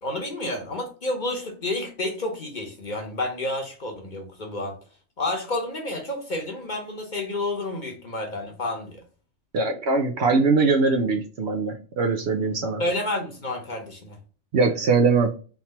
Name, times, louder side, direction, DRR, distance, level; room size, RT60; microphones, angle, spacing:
voice 1, 0.0-4.8 5.2-9.0 12.8-14.2, left 2 dB, 40° left, 2 dB, 1.0 m, -30 dB
voice 2, 9.5-12.8 14.5-15.3, right 4 dB, 60° right, 4 dB, 0.8 m, -21 dB
3.6 x 2.9 x 4.1 m, 0.38 s
omnidirectional pair, 1.4 m